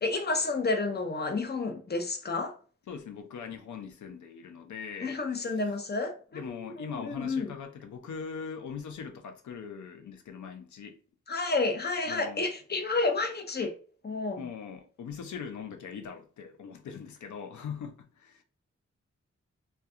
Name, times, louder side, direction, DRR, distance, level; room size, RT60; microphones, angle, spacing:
voice 1, 0.0-2.5 5.0-6.2 6.8-7.5 11.3-13.7 14.0-14.4, left 3 dB, 35° left, 0.6 m, -30 dB
voice 2, 2.9-5.5 6.3-11.0 12.1-12.5 14.4-18.4, left 6 dB, 85° left, 0.5 m, -41 dB
2.3 x 2.2 x 2.6 m
cardioid pair, 45°, 29 cm